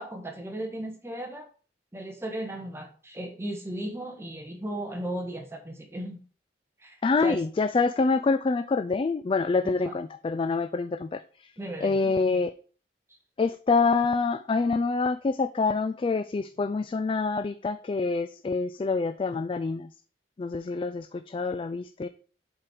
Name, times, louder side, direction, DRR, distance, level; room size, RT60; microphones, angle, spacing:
voice 1, 0.0-1.5 1.9-6.2 6.8-7.4 9.6-9.9 11.6-12.1, right 1 dB, 15° right, 3 dB, 1.4 m, -36 dB
voice 2, 7.0-11.5 11.8-12.5 13.4-19.9 20.4-22.1, left 4 dB, 30° left, 11 dB, 0.3 m, -26 dB
7.6 x 4.5 x 4.9 m, 0.40 s
head